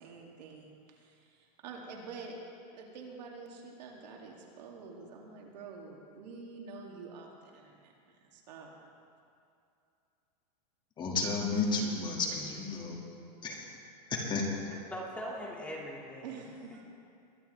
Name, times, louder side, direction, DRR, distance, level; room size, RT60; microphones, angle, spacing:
voice 1, 0.0-2.4 2.7-8.7 16.2-16.8, right 4 dB, 80° right, -1 dB, 2.6 m, -47 dB
voice 2, 11.0-13.0 13.4-13.7 14.1-14.5, left 3 dB, 20° left, -1 dB, 2.0 m, -32 dB
voice 3, 14.7-16.4, equal, 5° left, -3 dB, 2.1 m, -41 dB
21.5 x 11.5 x 3.4 m, 2.5 s
supercardioid pair, 145°, 21 cm